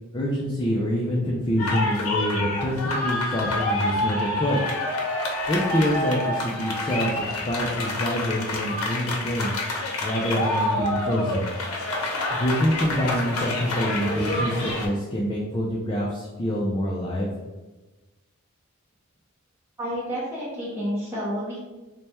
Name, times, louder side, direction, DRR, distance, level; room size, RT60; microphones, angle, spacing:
voice 1, 0.1-4.6 5.5-9.5 10.0-11.5 12.3-17.3, equal, 20° left, -4 dB, 0.4 m, -26 dB
sound 1, 1.6-14.9, left 1 dB, 80° left, 0.7 m, -28 dB
voice 2, 19.8-21.6, equal, 10° right, -9 dB, 0.8 m, -30 dB
3.2 x 2.2 x 4.2 m, 1.1 s
head